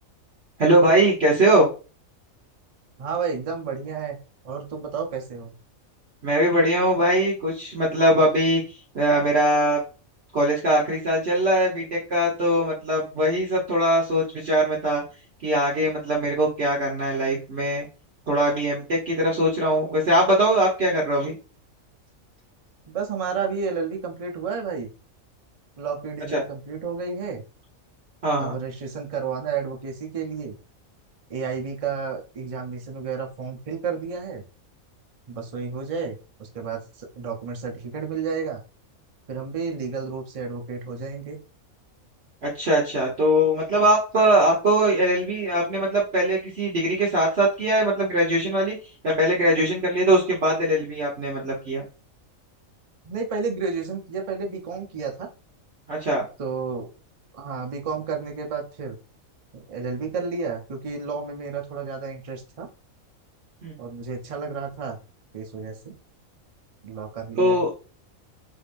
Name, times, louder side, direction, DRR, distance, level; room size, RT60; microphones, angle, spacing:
voice 1, 0.6-1.7 6.2-8.6 8.9-9.8 10.3-15.0 15.4-17.9 18.3-21.3 26.3-26.4 28.2-28.5 42.4-48.7 49.0-51.8 55.9-56.2 63.6-63.8 67.4-67.7, right 1 dB, 50° right, -4 dB, 1.2 m, -21 dB
voice 2, 3.0-4.2 4.4-5.5 22.9-24.9 25.8-27.4 28.4-30.6 31.3-34.4 35.3-38.6 39.3-41.4 53.0-55.3 56.4-56.9 57.3-59.0 59.5-62.7 63.8-65.0 65.3-65.9 66.8-67.6, right 5 dB, 35° right, 3 dB, 0.6 m, -31 dB
5.0 x 2.7 x 2.6 m, 0.34 s
omnidirectional pair, 1.5 m